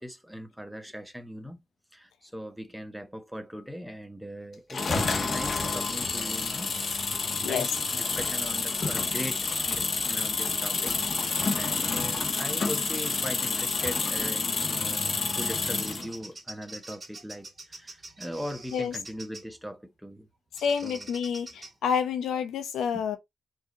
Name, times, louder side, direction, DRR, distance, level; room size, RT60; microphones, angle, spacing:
voice 1, 0.0-1.6 1.9-6.7 7.4-20.3 20.8-21.1, equal, ahead, 1.1 m, -40 dB
sound 1, 4.7-16.1, left 4 dB, 55° left, 1.2 m, -29 dB
Bird vocalization bird call bird song, 15.2-19.6 20.6-21.7, right 2 dB, 35° right, 1.8 m, -46 dB
voice 2, 20.6-23.2, left 7 dB, 85° left, 0.6 m, -28 dB
4.7 x 2.7 x 4.0 m
supercardioid pair, 50°, 0 cm